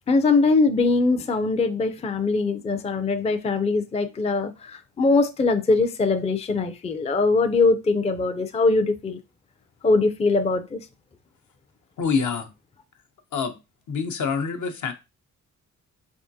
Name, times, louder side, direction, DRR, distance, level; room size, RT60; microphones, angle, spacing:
voice 1, 0.1-9.2 9.8-10.9, left 3 dB, 20° left, 0.4 m, -22 dB
voice 2, 12.0-12.5 13.3-13.5 13.9-14.9, left 5 dB, 70° left, 0.8 m, -26 dB
4.5 x 3.6 x 2.7 m
cardioid pair, 95°, 32 cm